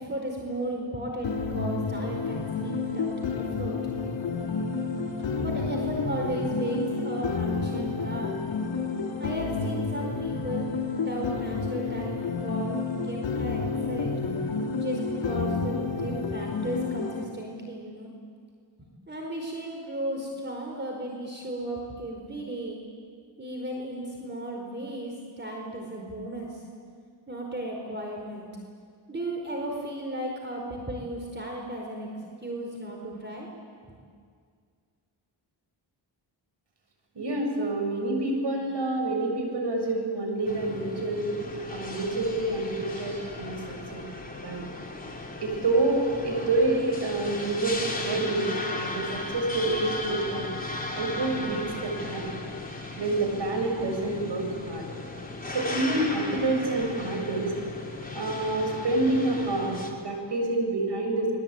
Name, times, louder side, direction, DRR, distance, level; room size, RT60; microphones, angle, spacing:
voice 1, 0.0-3.8 5.1-8.3 9.2-14.2 14.8-18.1 18.8-22.8 23.4-26.6 27.3-28.5 29.1-32.1 32.4-33.5 33.9-34.0, right 1 dB, 20° right, 0 dB, 4.8 m, -35 dB
sound 1, 1.2-17.2, left 4 dB, 65° left, 4.1 m, -30 dB
voice 2, 37.1-41.3 41.7-44.0 44.4-44.6 45.4-50.5 50.9-52.4 52.9-54.9 55.5-57.5 58.1-61.3, right 2 dB, 60° right, 3 dB, 7.5 m, -28 dB
sound 2, 40.5-59.9, left 2 dB, 20° left, 5.0 m, -36 dB
26.5 x 22.5 x 9.0 m, 2.1 s
cardioid pair, 80°, 47 cm